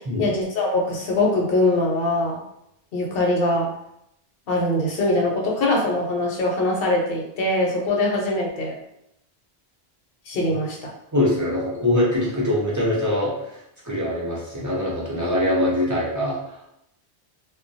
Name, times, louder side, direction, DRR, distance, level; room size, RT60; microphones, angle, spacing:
voice 1, 0.2-2.4 2.9-3.7 4.5-8.8 10.3-10.9, left 2 dB, 65° left, -1 dB, 0.8 m, -22 dB
voice 2, 11.1-16.7, left 1 dB, 30° right, -6 dB, 0.3 m, -23 dB
2.2 x 2.1 x 2.6 m, 0.80 s
omnidirectional pair, 1.1 m